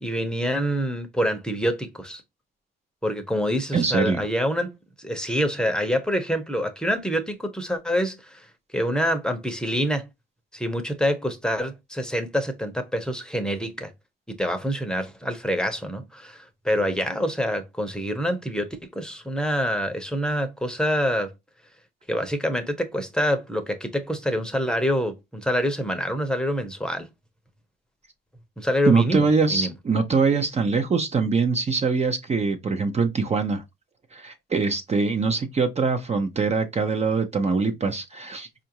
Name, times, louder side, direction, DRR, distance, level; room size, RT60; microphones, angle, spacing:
voice 1, 0.0-2.2 3.0-8.5 8.7-10.1 10.5-13.9 14.3-21.3 22.1-27.1 28.6-29.7, equal, 5° left, 0.8 m, -26 dB
voice 2, 3.7-4.2 28.9-33.6 34.1-38.5, right 4 dB, 35° right, 0.6 m, -23 dB
4.5 x 2.5 x 2.8 m
cardioid pair, 90°, 20 cm